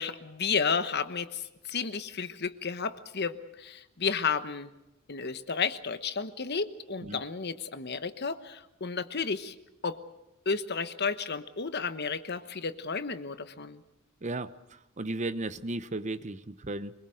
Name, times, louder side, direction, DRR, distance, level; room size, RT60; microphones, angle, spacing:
voice 1, 0.0-4.7 5.1-9.6 9.8-10.0 10.4-13.8, left 5 dB, 50° left, 11 dB, 1.2 m, -32 dB
voice 2, 14.2-16.9, right 2 dB, 35° right, 13 dB, 0.8 m, -35 dB
24.5 x 22.0 x 6.5 m, 0.94 s
head